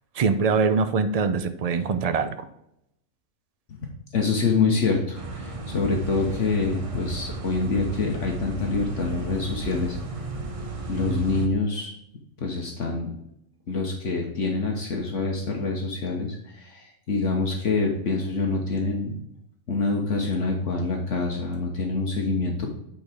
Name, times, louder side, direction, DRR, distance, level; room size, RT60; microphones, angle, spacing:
voice 1, 0.2-2.4, right 5 dB, 55° right, 9 dB, 0.4 m, -23 dB
voice 2, 4.1-10.0 10.9-11.9 12.4-13.1 13.7-19.1 19.7-22.7, left 3 dB, 60° left, 1 dB, 1.4 m, -26 dB
sound 1, 5.1-11.5, right 2 dB, 30° right, 0.8 m, -34 dB
8.5 x 4.7 x 3.4 m, 0.79 s
omnidirectional pair, 1.4 m